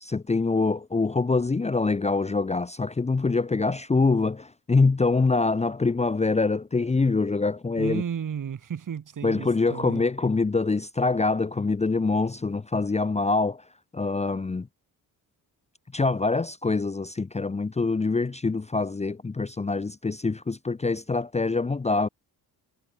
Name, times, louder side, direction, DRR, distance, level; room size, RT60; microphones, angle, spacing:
voice 1, 0.0-8.0 9.2-13.6 13.9-14.7 15.9-22.1, left 3 dB, 15° left, 0.9 m, -25 dB
voice 2, 7.8-10.0, right 8 dB, 55° right, 6.3 m, -33 dB
cardioid pair, 105°, 38 cm